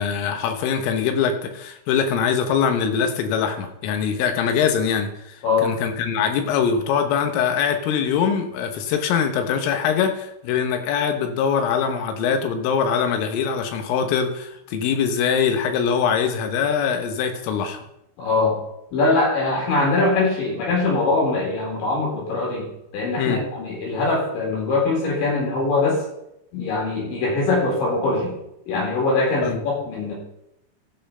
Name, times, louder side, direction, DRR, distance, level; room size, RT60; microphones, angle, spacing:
voice 1, 0.0-17.8 23.2-23.4 29.4-29.6, left 7 dB, 80° left, 6 dB, 3.8 m, -23 dB
voice 2, 5.4-5.7 18.2-18.6 18.9-22.7 22.9-26.0 26.5-28.3 28.7-30.1, left 3 dB, 65° left, -3 dB, 6.2 m, -22 dB
15.5 x 5.8 x 5.5 m, 0.80 s
omnidirectional pair, 5.9 m